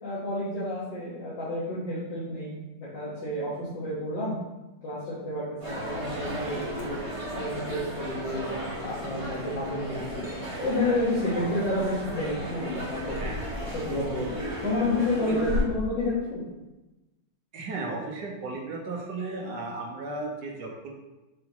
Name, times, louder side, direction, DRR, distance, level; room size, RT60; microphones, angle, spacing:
voice 1, 0.0-2.6 2.9-4.3 4.8-7.0 7.3-13.2 13.7-14.3 14.6-16.5, left 1 dB, 85° left, -10 dB, 2.2 m, -30 dB
sound 1, 5.6-15.6, equal, 20° right, 1.5 m, -34 dB
voice 2, 17.5-20.9, right 3 dB, 70° right, 0 dB, 1.5 m, -35 dB
6.0 x 5.5 x 3.0 m, 1.0 s
omnidirectional pair, 2.0 m